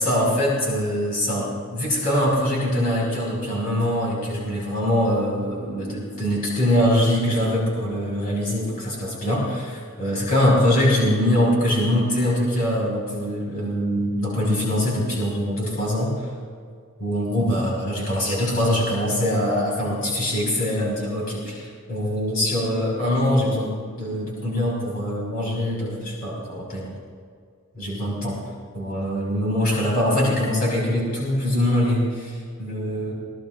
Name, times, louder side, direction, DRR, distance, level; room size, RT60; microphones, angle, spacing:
voice 1, 0.0-16.3 17.0-26.9 27.7-28.4 28.7-33.1, left 1 dB, 40° left, -4 dB, 5.3 m, -23 dB
23.0 x 19.5 x 2.6 m, 2.1 s
head